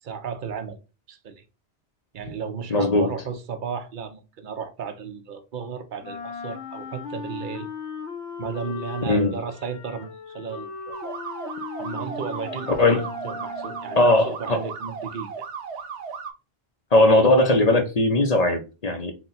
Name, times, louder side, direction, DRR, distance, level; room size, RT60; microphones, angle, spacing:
voice 1, 0.0-0.8 1.1-1.4 2.1-7.7 8.4-11.1 11.8-15.4, right 6 dB, 55° right, 0.7 m, -34 dB
voice 2, 2.7-3.1 9.1-9.4 12.8-13.0 14.0-14.6 16.9-19.1, left 2 dB, 45° left, 0.6 m, -19 dB
Wind instrument woodwind instrument, 6.0-14.2, left 4 dB, 85° left, 1.0 m, -37 dB
sound 1, 10.9-16.3, right 6 dB, 85° right, 1.0 m, -36 dB
4.1 x 2.2 x 3.9 m
omnidirectional pair, 1.1 m